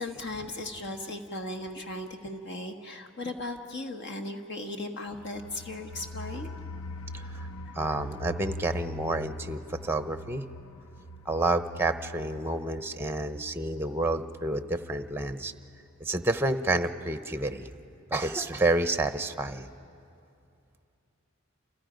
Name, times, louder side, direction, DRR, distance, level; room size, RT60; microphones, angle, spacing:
voice 1, 0.0-6.5, left 2 dB, 60° left, 4 dB, 1.5 m, -37 dB
sound 1, 5.1-15.8 16.1-16.2 16.5-16.6, left 2 dB, 85° left, 0.8 m, -43 dB
voice 2, 7.7-10.4 11.3-15.5 16.0-17.7 18.1-19.7, right 2 dB, 10° right, 10 dB, 0.7 m, -29 dB
28.5 x 28.0 x 5.2 m, 2.6 s
head